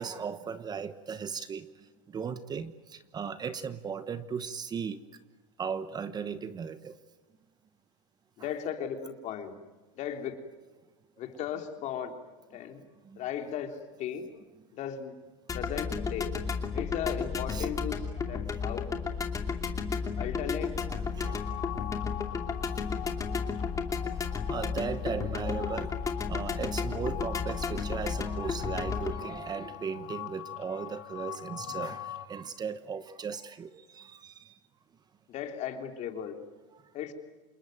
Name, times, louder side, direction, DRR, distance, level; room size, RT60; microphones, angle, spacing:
voice 1, 0.0-1.7 2.1-5.0 5.6-6.9 8.4-8.5 13.1-13.2 17.5-17.7 18.2-18.6 20.9-21.5 24.5-26.0 26.3-34.5, right 6 dB, 25° right, 13 dB, 1.1 m, -37 dB
voice 2, 8.4-9.6 10.0-10.3 11.2-12.1 12.5-12.8 13.2-13.7 14.0-14.2 14.7-15.1 15.5-16.3 16.7-18.0 18.3-18.9 20.2-20.8 22.7-22.9 35.3-36.4 36.9-37.1, left 9 dB, 45° left, 6 dB, 3.3 m, -36 dB
sound 1, 15.5-29.2, left 5 dB, 20° left, 2.7 m, -33 dB
sound 2, 21.2-32.3, left 15 dB, 75° left, 2.7 m, -42 dB
27.5 x 20.5 x 9.2 m, 1.2 s
supercardioid pair, 140°, 17 cm